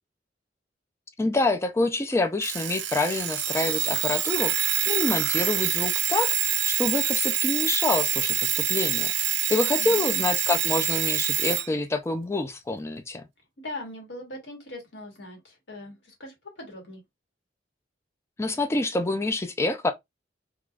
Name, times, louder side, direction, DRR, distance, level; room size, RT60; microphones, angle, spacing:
voice 1, 1.2-13.2 18.4-19.9, left 2 dB, 15° left, 0.3 m, -27 dB
Alarm, 2.4-11.7, right 10 dB, 75° right, 0.5 m, -26 dB
voice 2, 9.8-10.3 13.6-17.0, left 1 dB, 80° left, 1.3 m, -40 dB
3.2 x 2.3 x 2.3 m
head